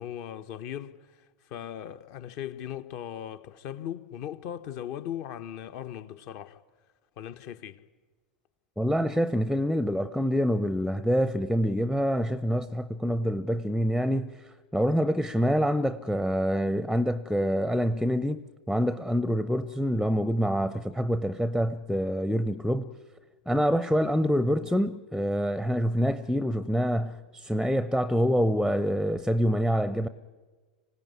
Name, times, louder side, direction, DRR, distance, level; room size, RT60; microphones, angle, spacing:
voice 1, 0.0-6.6 7.2-7.8, left 10 dB, 45° left, 1.1 m, -38 dB
voice 2, 8.8-22.9 23.5-30.1, equal, ahead, 0.7 m, -26 dB
25.5 x 17.5 x 9.6 m
figure-of-eight pair, 90°, 5 cm